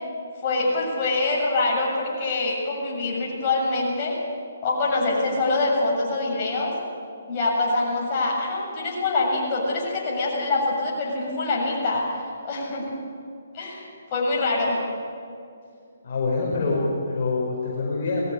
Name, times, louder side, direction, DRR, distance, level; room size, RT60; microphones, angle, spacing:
voice 1, 0.4-4.1 4.6-6.7 7.3-12.9 13.5-13.8 14.1-14.8 16.7-16.8, left 2 dB, 30° left, -4 dB, 7.4 m, -25 dB
voice 2, 16.0-18.3, left 3 dB, 45° left, -4 dB, 4.9 m, -25 dB
20.5 x 14.5 x 9.9 m, 2.5 s
hypercardioid pair, 155°, 0 cm